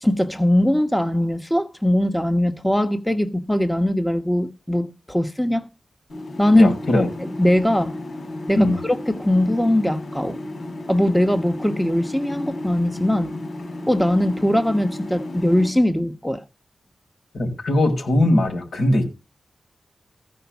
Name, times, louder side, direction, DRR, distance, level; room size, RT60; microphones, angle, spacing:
voice 1, 0.0-5.7 6.4-8.0 8.5-10.4 10.9-13.4 13.9-16.4, left 1 dB, 5° left, 1.1 m, -21 dB
sound 1, 6.1-15.7, left 2 dB, 45° left, 7.3 m, -34 dB
voice 2, 6.5-7.1 8.6-8.8 17.3-19.1, left 1 dB, 70° left, 5.3 m, -19 dB
15.5 x 5.2 x 7.0 m
wide cardioid pair, 135°, 0 cm